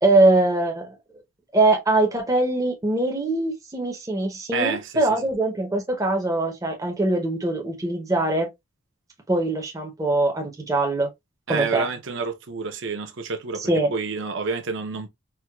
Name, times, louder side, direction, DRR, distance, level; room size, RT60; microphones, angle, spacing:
voice 1, 0.0-0.9 1.5-8.5 9.3-11.1 11.5-11.9 13.6-13.9, right 2 dB, 15° right, 0.6 m, -22 dB
voice 2, 4.5-4.9 11.5-15.1, right 4 dB, 55° right, 0.6 m, -28 dB
4.4 x 2.1 x 2.2 m
head